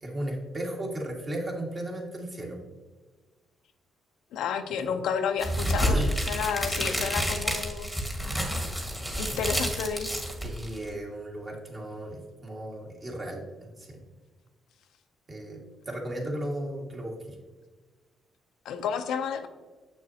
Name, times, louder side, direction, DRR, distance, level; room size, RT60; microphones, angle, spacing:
voice 1, 0.0-2.6 4.9-5.0 5.8-6.1 9.4-9.5 10.4-14.0 15.3-17.4, right 1 dB, 35° right, -1 dB, 1.8 m, -35 dB
voice 2, 4.3-7.9 9.2-10.1 18.6-19.5, left 7 dB, 80° left, 7 dB, 0.5 m, -31 dB
sound 1, 5.4-10.9, equal, 10° right, 1.5 m, -29 dB
7.4 x 6.3 x 2.8 m, 1.3 s
cardioid pair, 90°, 0 cm